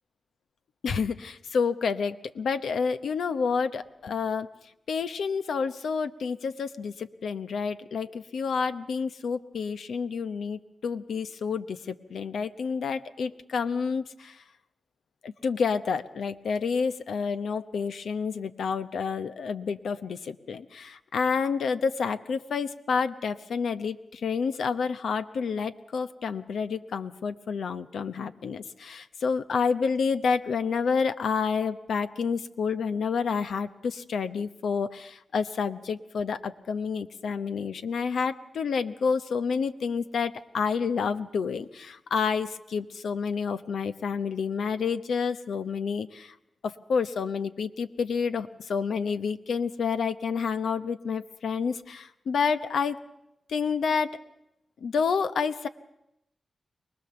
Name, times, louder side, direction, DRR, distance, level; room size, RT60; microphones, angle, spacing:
voice 1, 0.8-4.5 4.9-14.4 15.2-46.3 46.6-53.0 53.5-54.2 54.8-55.7, left 5 dB, 85° left, 11 dB, 0.8 m, -29 dB
23.5 x 19.0 x 7.0 m, 0.83 s
cardioid pair, 50°, 0 cm